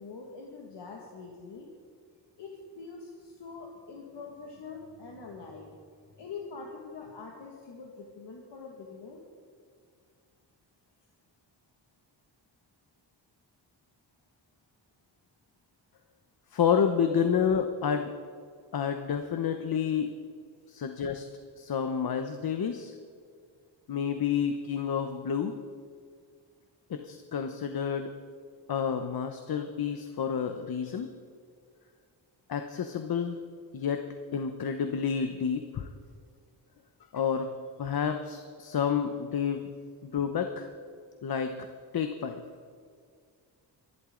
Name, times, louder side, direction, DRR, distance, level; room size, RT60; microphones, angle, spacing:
voice 1, 0.0-1.7 2.4-5.7 6.2-9.2 30.8-31.1, left 4 dB, 75° left, -1 dB, 2.0 m, -44 dB
voice 2, 16.5-18.1 18.7-20.1 20.7-21.2 21.6-22.9 23.9-25.6 26.9-28.1 28.7-31.1 32.5-33.4 33.7-34.0 34.3-35.9 37.1-37.5 37.8-39.6 40.0-40.7 41.2-41.5 41.9-42.4, left 7 dB, 55° left, 7 dB, 1.0 m, -29 dB
25.0 x 11.5 x 3.9 m, 2.1 s
wide cardioid pair, 115°, 42 cm